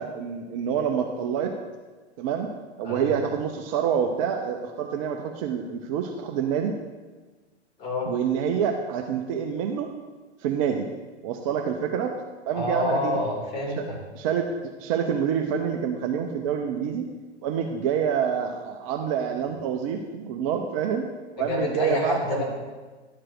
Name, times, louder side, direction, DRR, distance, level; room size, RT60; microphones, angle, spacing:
voice 1, 0.0-1.5 2.2-2.5 2.8-6.7 8.1-9.9 10.4-10.9 11.2-12.1 12.5-13.2 13.8-13.9 14.1-14.5 14.8-17.0 17.4-21.0 21.4-22.4, right 7 dB, 30° right, 4 dB, 0.6 m, -27 dB
voice 2, 12.5-14.0 21.4-22.4, left 1 dB, 30° left, -2 dB, 3.2 m, -27 dB
11.5 x 4.7 x 6.0 m, 1.3 s
figure-of-eight pair, 110°, 33 cm